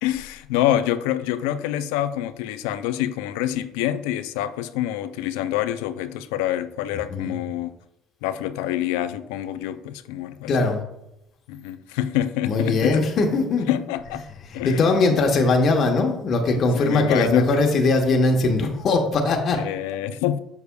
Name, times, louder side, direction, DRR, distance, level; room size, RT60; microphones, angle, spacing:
voice 1, 0.0-7.7 8.2-10.8 11.5-13.0 13.7-14.2 14.5-15.2 16.5-17.6 19.5-20.4, left 12 dB, 85° left, 0.4 m, -26 dB
voice 2, 10.5-10.8 12.5-13.8 14.5-19.6, left 3 dB, 55° left, 1.0 m, -20 dB
6.9 x 6.6 x 2.3 m
supercardioid pair, 85°, 0 cm